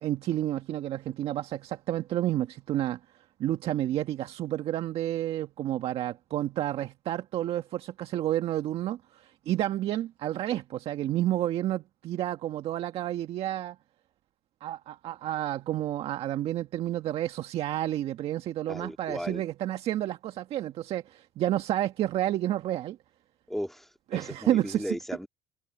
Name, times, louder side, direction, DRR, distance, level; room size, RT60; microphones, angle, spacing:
voice 1, 0.0-3.0 3.4-13.8 14.6-23.0 24.1-24.9, right 13 dB, 60° right, 1.6 m, -30 dB
voice 2, 18.7-19.4 23.5-25.3, equal, ahead, 2.2 m, -36 dB
supercardioid pair, 85°, 11 cm